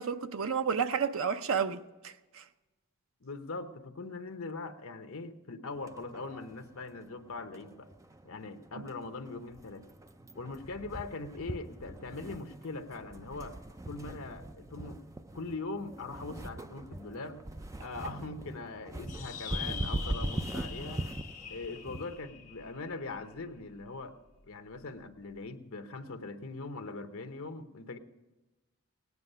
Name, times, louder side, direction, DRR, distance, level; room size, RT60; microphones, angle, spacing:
voice 1, 0.0-2.4, right 6 dB, 65° right, 0.6 m, -31 dB
voice 2, 3.2-7.9 8.2-9.8 10.3-13.6 13.9-15.0 15.3-17.4 17.8-21.0 21.5-24.1 24.5-28.0, left 3 dB, 70° left, 0.9 m, -41 dB
sound 1, 5.7-22.2, right 1 dB, 15° right, 0.4 m, -41 dB
sound 2, 19.1-23.8, left 6 dB, 35° left, 1.4 m, -44 dB
17.5 x 9.6 x 5.5 m
head